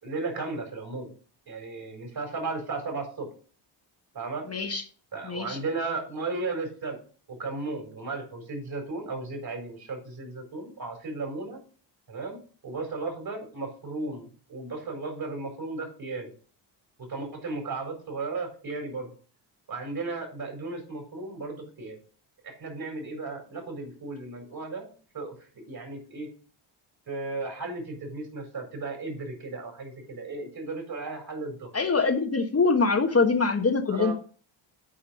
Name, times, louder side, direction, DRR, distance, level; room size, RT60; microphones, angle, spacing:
voice 1, 0.0-1.1 1.5-3.3 4.1-4.4 5.1-7.0 7.3-11.6 12.1-16.3 17.1-19.1 19.7-22.0 22.4-26.3 27.1-31.7 33.1-33.2 33.9-34.1, right 3 dB, 50° right, 3 dB, 4.5 m, -35 dB
voice 2, 4.5-4.8 5.3-5.6 31.7-34.1, left 4 dB, 30° left, 5 dB, 1.2 m, -24 dB
8.7 x 4.8 x 6.4 m, 0.42 s
cardioid pair, 70°, 48 cm